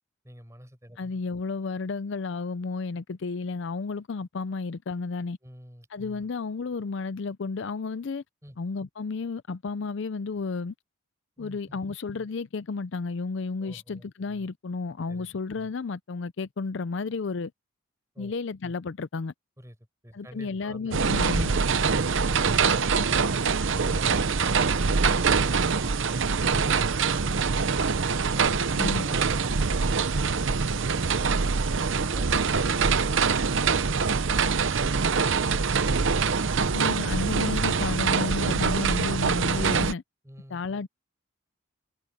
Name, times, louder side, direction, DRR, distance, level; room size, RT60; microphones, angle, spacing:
voice 1, 0.2-1.0 5.4-5.9 8.4-8.6 11.4-11.8 13.6-14.1 15.1-15.3 18.1-18.3 19.6-19.8 20.0-23.4 23.7-28.0 28.3-31.7 32.1-35.3 40.2-40.6, equal, 15° right, 7.6 m, -48 dB
voice 2, 1.0-5.4 5.9-8.2 8.6-10.7 11.4-17.5 18.2-19.3 20.1-21.5 28.8-29.1 36.7-40.0 40.5-40.9, left 4 dB, 55° left, 0.5 m, -32 dB
sound 1, 20.9-39.9, right 5 dB, 60° right, 0.7 m, -24 dB
head